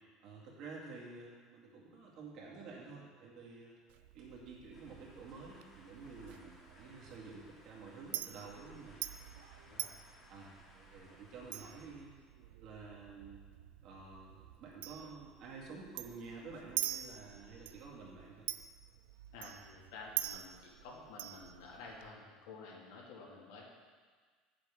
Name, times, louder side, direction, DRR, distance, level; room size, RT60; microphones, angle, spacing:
voice 1, 0.2-3.8 4.1-9.0 9.7-9.8 10.3-12.1 12.6-13.4 13.8-18.5, right 4 dB, 50° right, -3 dB, 2.1 m, -50 dB
Chink clink, 3.9-22.1, right 14 dB, 85° right, 0.3 m, -46 dB
sound 1, 4.7-11.9, left 1 dB, 20° left, 1.4 m, -62 dB
voice 2, 9.6-10.0 19.3-23.6, left 3 dB, 85° left, -3 dB, 2.0 m, -51 dB
9.0 x 7.5 x 3.6 m, 1.5 s
cardioid pair, 160°, 0 cm